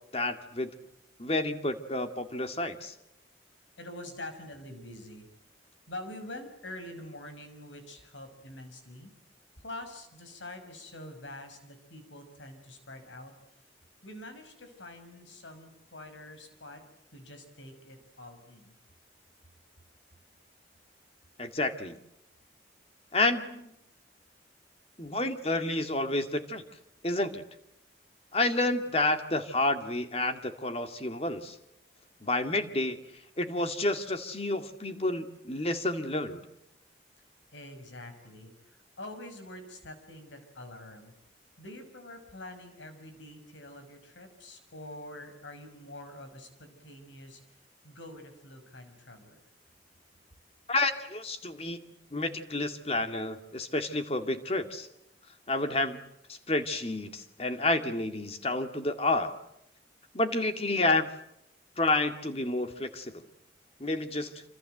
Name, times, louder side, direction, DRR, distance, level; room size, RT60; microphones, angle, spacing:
voice 1, 0.1-0.7 1.2-2.9 21.4-22.0 23.1-23.7 25.0-26.6 27.0-27.4 28.3-31.6 32.2-33.0 33.4-36.4 50.7-54.9 55.5-56.0 56.3-59.4 60.1-61.1 61.8-63.2 63.8-64.4, left 2 dB, 35° left, 7 dB, 2.2 m, -30 dB
voice 2, 3.8-5.3 5.9-9.1 9.6-13.3 14.0-16.8 17.1-18.8 32.0-32.1 37.5-41.1 41.6-49.4, left 1 dB, 90° left, 8 dB, 6.0 m, -46 dB
27.5 x 26.5 x 7.9 m, 0.80 s
head